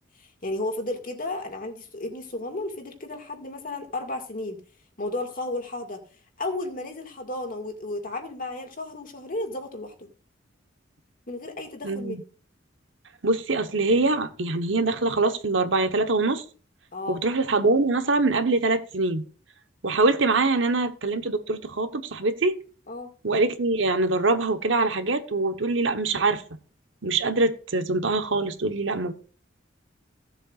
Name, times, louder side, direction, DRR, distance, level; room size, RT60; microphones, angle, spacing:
voice 1, 0.2-4.6 5.0-6.0 6.4-10.1 11.3-12.2 16.9-17.2 22.9-23.1, left 2 dB, 45° left, 2.1 m, -33 dB
voice 2, 11.8-12.2 13.2-16.4 17.1-19.2 19.8-22.6 23.2-26.4 27.0-29.1, right 3 dB, 80° right, 1.1 m, -24 dB
16.5 x 7.6 x 2.5 m
head